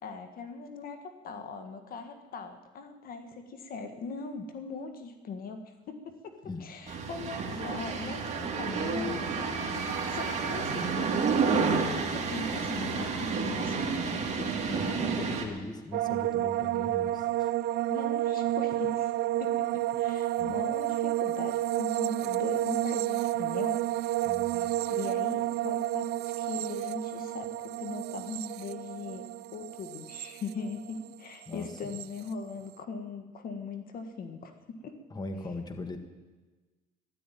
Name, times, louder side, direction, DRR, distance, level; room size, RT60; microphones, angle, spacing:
voice 1, 0.0-14.9 17.9-19.1 19.4-24.2 24.5-29.2 29.5-35.0, left 4 dB, 60° left, 7 dB, 1.6 m, -40 dB
sound 1, 6.9-15.5, right 5 dB, 40° right, 2.7 m, -30 dB
voice 2, 14.6-17.5 20.4-20.6 24.2-24.7 31.4-31.7 35.1-36.0, left 2 dB, 25° left, 6 dB, 1.6 m, -40 dB
sound 2, 15.9-31.1 31.4-32.1, right 14 dB, 75° right, 0.4 m, -30 dB
12.5 x 12.5 x 9.1 m, 1.3 s
cardioid pair, 110°, 17 cm